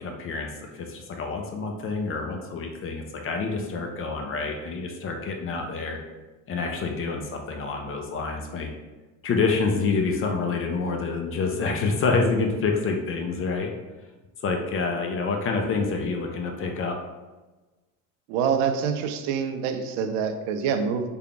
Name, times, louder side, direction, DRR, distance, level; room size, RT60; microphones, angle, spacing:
voice 1, 0.0-6.0 6.5-8.7 9.2-13.7 14.4-17.0, left 4 dB, 35° left, 3 dB, 0.4 m, -27 dB
voice 2, 18.3-21.1, right 6 dB, 75° right, 7 dB, 0.6 m, -26 dB
3.3 x 2.3 x 3.8 m, 1.2 s
supercardioid pair, 120°, 42 cm